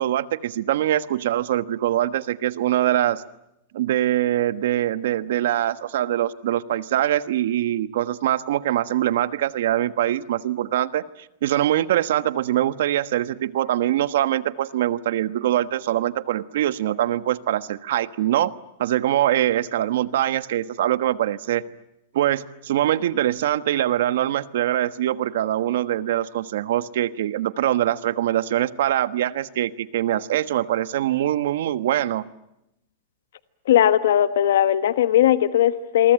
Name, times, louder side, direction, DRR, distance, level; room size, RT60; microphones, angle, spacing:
voice 1, 0.0-3.2 3.7-11.0 11.4-18.5 18.8-21.6 22.1-32.2, right 12 dB, 65° right, 14 dB, 1.3 m, -23 dB
voice 2, 33.7-36.1, left 11 dB, 90° left, 13 dB, 1.3 m, -18 dB
28.0 x 23.5 x 8.9 m, 0.85 s
supercardioid pair, 180°, 0 cm